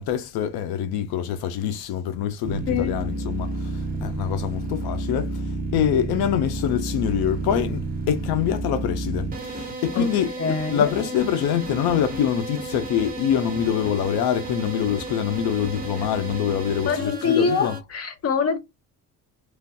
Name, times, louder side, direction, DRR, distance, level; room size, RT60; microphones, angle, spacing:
voice 1, 0.0-17.7, left 9 dB, 85° left, 0.6 m, -25 dB
sound 1, 2.4-17.8, right 2 dB, 25° right, 0.9 m, -31 dB
voice 2, 2.7-3.0 9.9-10.9 16.0-16.1 16.9-18.6, left 5 dB, 40° left, 0.9 m, -24 dB
3.1 x 2.3 x 2.6 m
cardioid pair, 115°, 37 cm